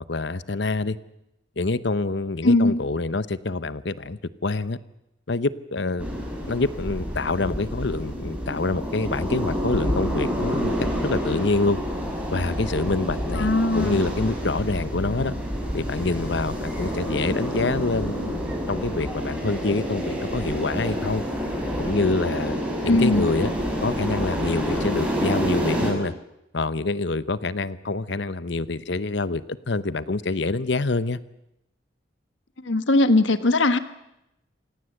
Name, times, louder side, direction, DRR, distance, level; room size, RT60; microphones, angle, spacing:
voice 1, 0.1-1.0 1.6-4.8 5.3-6.1 6.5-10.7 11.0-11.8 12.3-15.3 15.7-18.4 18.7-21.2 21.8-23.5 23.8-26.1 26.5-31.2, left 3 dB, 65° left, 16 dB, 0.9 m, -26 dB
voice 2, 2.4-2.8 13.4-14.0 22.9-23.3 32.7-33.8, left 2 dB, 80° left, 12 dB, 1.4 m, -20 dB
sound 1, 6.0-25.9, equal, 5° right, 6.0 m, -28 dB
27.5 x 18.0 x 7.9 m, 0.85 s
head